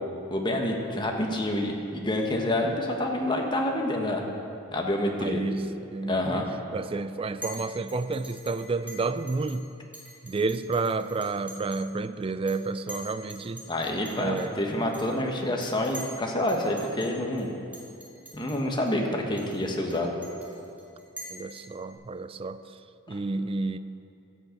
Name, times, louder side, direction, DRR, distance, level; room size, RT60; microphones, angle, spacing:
voice 1, 0.3-4.2 4.7-5.4 6.1-6.5 13.7-17.5 18.3-20.1, left 1 dB, 20° left, 1 dB, 1.3 m, -28 dB
voice 2, 5.2-6.5 6.7-9.7 10.2-13.6 14.2-14.6 21.3-22.6 23.1-23.8, right 3 dB, 25° right, 12 dB, 0.4 m, -30 dB
Chink clink, 7.4-7.6 7.9-9.6 9.9-11.9 12.2-12.6 12.9-16.2 16.5-17.1 17.4-17.5 17.7-18.6 18.9-19.0 19.4-21.9, equal, 5° right, 2.7 m, -44 dB
13.5 x 6.5 x 8.4 m, 2.6 s
head